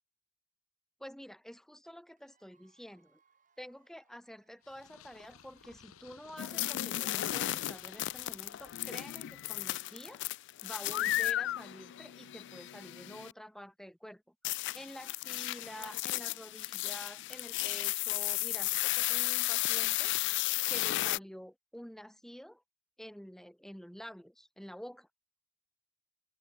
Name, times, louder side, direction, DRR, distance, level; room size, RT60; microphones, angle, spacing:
voice 1, 1.0-3.2 3.6-10.2 10.6-14.2 14.7-20.1 20.7-22.6 23.0-25.1, equal, ahead, 0.9 m, -49 dB
Cheering / Applause / Crowd, 2.2-6.9, right 6 dB, 40° right, 4.2 m, -74 dB
Purr, 4.6-9.5, left 7 dB, 80° left, 1.1 m, -59 dB
sound 1, 6.4-13.3 14.4-21.2, left 16 dB, 55° left, 0.3 m, -34 dB
head